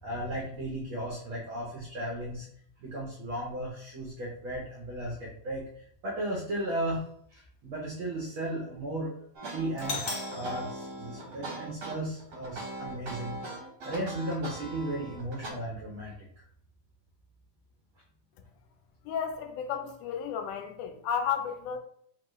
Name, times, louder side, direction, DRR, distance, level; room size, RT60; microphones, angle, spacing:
voice 1, 0.0-2.5 2.8-7.0 7.3-9.1 9.5-16.4, right 1 dB, 85° right, -4 dB, 1.1 m, -35 dB
sound 1, 9.3-15.5, right 2 dB, 65° right, 1.0 m, -40 dB
Doorbell, 9.8-11.8, left 4 dB, 70° left, 1.9 m, -39 dB
voice 2, 19.1-21.8, left 7 dB, 85° left, 5 dB, 2.1 m, -33 dB
5.1 x 2.2 x 3.1 m, 0.64 s
omnidirectional pair, 3.5 m